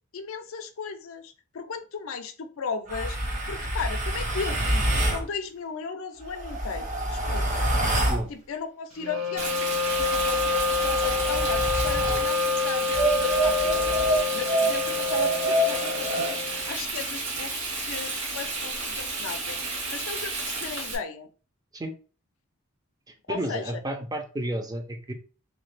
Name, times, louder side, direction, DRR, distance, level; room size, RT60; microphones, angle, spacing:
voice 1, 0.1-7.7 8.3-13.9 14.3-21.3 23.3-23.8, left 5 dB, 70° left, 7 dB, 0.5 m, -36 dB
sound 1, 2.9-5.2 6.2-8.3 9.9-12.3 12.9-16.4, right 1 dB, 35° right, 0.9 m, -27 dB
Wind instrument woodwind instrument, 9.0-16.8, left 4 dB, 80° right, 0.9 m, -28 dB
Frying (food), 9.4-21.0, right 3 dB, 60° right, 1.8 m, -32 dB
voice 2, 23.1-25.1, right 1 dB, 20° right, 4 dB, 0.5 m, -32 dB
3.1 x 2.8 x 3.2 m, 0.37 s
head